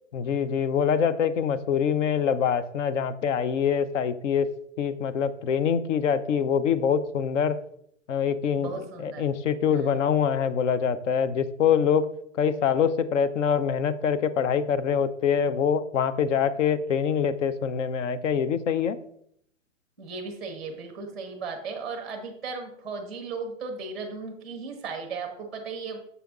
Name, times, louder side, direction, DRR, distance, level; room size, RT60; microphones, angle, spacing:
voice 1, 0.1-4.5 4.8-7.6 8.1-8.7 9.0-12.1 12.4-19.0, left 7 dB, 65° left, 14 dB, 0.7 m, -24 dB
voice 2, 8.6-9.3 9.7-10.0 20.0-26.0, right 4 dB, ahead, 4 dB, 0.7 m, -36 dB
7.0 x 5.1 x 3.6 m, 0.71 s
hypercardioid pair, 165°, 39 cm